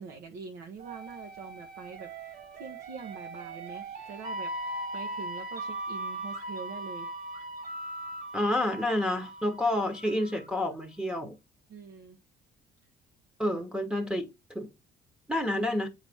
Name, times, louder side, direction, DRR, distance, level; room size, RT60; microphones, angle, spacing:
voice 1, 0.0-4.5 4.9-7.1 11.7-12.2, right 5 dB, 80° right, 1.1 m, -44 dB
sound 1, 0.8-10.5, right 1 dB, 60° right, 2.4 m, -39 dB
voice 2, 8.3-11.4 13.4-14.3 14.5-14.7 15.3-15.9, left 1 dB, 5° right, 1.0 m, -29 dB
8.5 x 3.9 x 3.5 m
cardioid pair, 110°, 17 cm